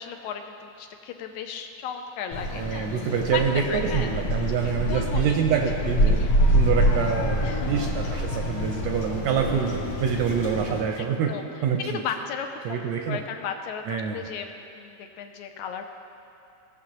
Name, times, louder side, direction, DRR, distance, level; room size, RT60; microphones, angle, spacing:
voice 1, 0.0-2.9 3.3-4.1 4.6-5.4 6.2-6.3 7.4-7.8 11.0-11.5 11.8-12.8 13.1-15.9, left 7 dB, 80° left, 5 dB, 1.9 m, -35 dB
sound 1, 2.3-10.8, equal, 65° left, 1.7 m, -26 dB
voice 2, 2.5-6.2 6.5-11.3 11.6-12.0 12.6-13.2 13.9-14.2, right 7 dB, 80° right, 3 dB, 1.6 m, -26 dB
17.5 x 6.7 x 3.0 m, 2.6 s
omnidirectional pair, 3.5 m